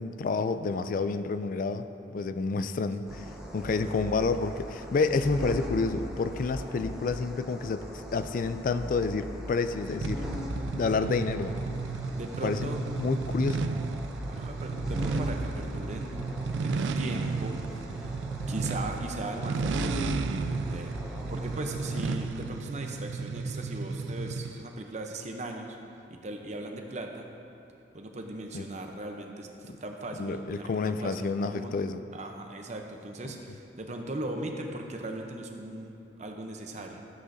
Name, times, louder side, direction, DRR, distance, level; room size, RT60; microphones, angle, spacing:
voice 1, 0.0-3.3 3.5-10.4 10.7-11.5 12.4-12.6 13.0-13.7 28.5-28.6 29.7-29.8 30.2-32.0, left 4 dB, 45° left, 11 dB, 0.3 m, -29 dB
sound 1, 3.1-22.3, equal, 5° right, 0.8 m, -39 dB
sound 2, 10.0-24.7, right 4 dB, 75° right, 0.3 m, -34 dB
voice 2, 12.1-12.9 14.3-16.2 16.6-18.2 18.5-21.0 21.3-25.8 26.1-27.3 27.9-31.8 32.1-37.1, right 1 dB, 40° right, 3 dB, 0.7 m, -38 dB
13.0 x 8.0 x 2.7 m, 2.8 s
head